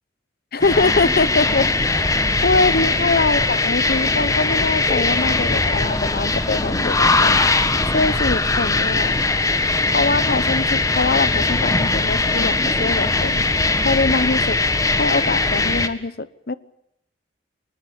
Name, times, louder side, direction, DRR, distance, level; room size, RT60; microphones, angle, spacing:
voice 1, 0.5-2.1 2.4-7.5 7.9-9.2 9.9-13.4 13.8-14.6 15.0-16.5, left 3 dB, 55° left, 16 dB, 1.1 m, -23 dB
sound 1, 0.6-15.9, left 3 dB, 20° left, 1.5 m, -20 dB
24.5 x 20.5 x 7.2 m, 0.78 s
head